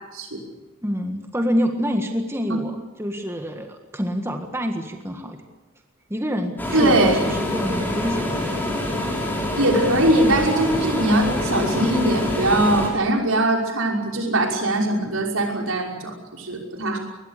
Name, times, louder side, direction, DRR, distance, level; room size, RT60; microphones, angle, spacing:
voice 1, 0.8-5.4 6.1-8.4, equal, 10° right, 4 dB, 1.7 m, -27 dB
sound 1, 6.6-12.9, left 1 dB, 10° left, 5.9 m, -26 dB
voice 2, 6.7-7.2 9.5-17.0, right 1 dB, 80° right, 1 dB, 5.6 m, -21 dB
22.5 x 20.5 x 8.3 m, 1.2 s
head